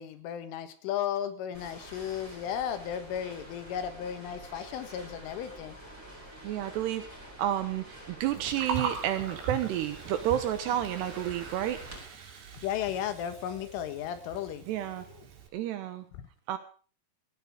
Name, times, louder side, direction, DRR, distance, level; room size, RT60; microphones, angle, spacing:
voice 1, 0.0-5.8 12.6-15.3 16.1-16.3, left 9 dB, 80° left, 10 dB, 3.9 m, -35 dB
sound 1, 1.5-12.0, right 1 dB, 5° right, 6.6 m, -48 dB
voice 2, 6.4-7.1 7.4-11.8 14.7-15.1 15.5-16.0 16.5-16.6, right 11 dB, 75° right, 10 dB, 2.6 m, -30 dB
Gurgling, 8.3-15.5, right 6 dB, 60° right, 4.8 m, -40 dB
18.0 x 13.5 x 4.9 m, 0.40 s
omnidirectional pair, 5.6 m